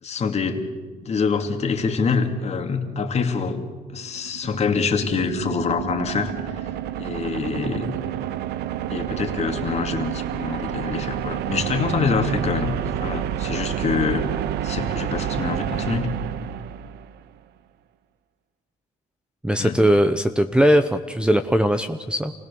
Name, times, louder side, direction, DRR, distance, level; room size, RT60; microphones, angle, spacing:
voice 1, 0.0-0.6 1.0-3.6 3.9-6.3 7.0-8.0 8.9-14.3 14.6-16.1 19.6-19.8, left 5 dB, 40° left, 4 dB, 2.4 m, -25 dB
sound 1, 4.1-17.2, right 11 dB, 75° right, 0.8 m, -29 dB
voice 2, 19.4-22.3, equal, 5° right, 9 dB, 0.8 m, -19 dB
28.0 x 17.0 x 7.0 m, 1.4 s
cardioid pair, 110°, 17 cm